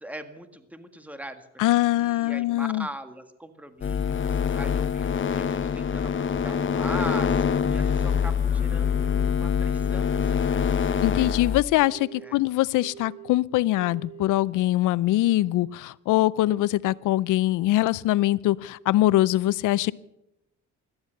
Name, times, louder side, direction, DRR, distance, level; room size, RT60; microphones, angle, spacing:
voice 1, 0.0-1.6 1.9-10.9 11.1-11.3 12.2-12.4, right 1 dB, 5° right, 8 dB, 1.8 m, -41 dB
voice 2, 1.6-2.9 11.0-19.9, left 16 dB, 85° left, 21 dB, 0.6 m, -23 dB
sound 1, 3.7-9.2, left 2 dB, 25° left, 5.3 m, -48 dB
sound 2, 3.8-11.6, left 7 dB, 40° left, 0.9 m, -25 dB
Telephone, 7.7-8.3 8.7-9.3 9.7-10.3 10.7-11.3 11.7-12.3 12.7-13.3 13.7-14.3, right 9 dB, 60° left, 5.1 m, -45 dB
17.0 x 13.0 x 6.5 m, 0.88 s
cardioid pair, 90°, 30 cm